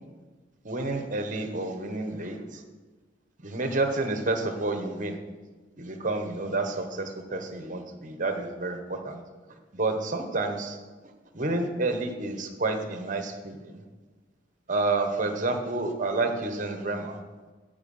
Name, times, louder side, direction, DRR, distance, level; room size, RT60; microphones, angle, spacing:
voice 1, 0.6-2.6 3.4-5.2 5.8-9.2 9.7-10.8 11.3-13.8 14.7-17.2, right 2 dB, 40° right, 6 dB, 1.1 m, -29 dB
15.5 x 5.6 x 5.5 m, 1.3 s
head